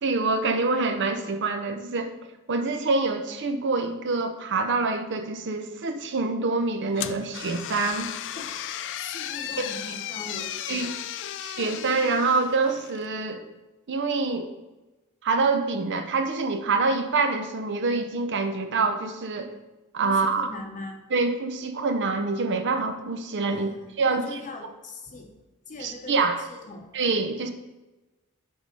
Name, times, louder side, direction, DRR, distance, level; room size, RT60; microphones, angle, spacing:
voice 1, 0.0-2.1 2.5-8.1 9.6-9.7 10.7-10.9 11.4-13.4 13.9-14.5 15.2-19.5 19.9-20.5 21.1-23.7 24.0-24.4 25.8-26.4 26.9-27.5, right 3 dB, 55° right, 7 dB, 0.6 m, -26 dB
sound 1, 7.0-13.1, left 11 dB, 55° left, 0.3 m, -35 dB
voice 2, 9.0-10.9 20.0-21.0 23.5-25.3 25.7-26.9, left 2 dB, 35° left, 3 dB, 0.9 m, -41 dB
6.3 x 4.7 x 5.2 m, 1.1 s
head